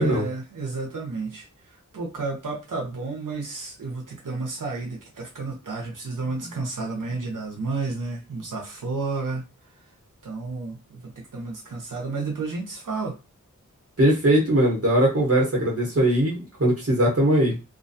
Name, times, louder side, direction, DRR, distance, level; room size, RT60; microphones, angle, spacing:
voice 1, 0.0-1.5 1.9-9.4 10.2-13.2, right 3 dB, 80° right, 0.7 m, -31 dB
voice 2, 14.0-17.6, right 1 dB, 50° right, 1.0 m, -20 dB
2.5 x 2.2 x 2.6 m
wide cardioid pair, 45°, 32 cm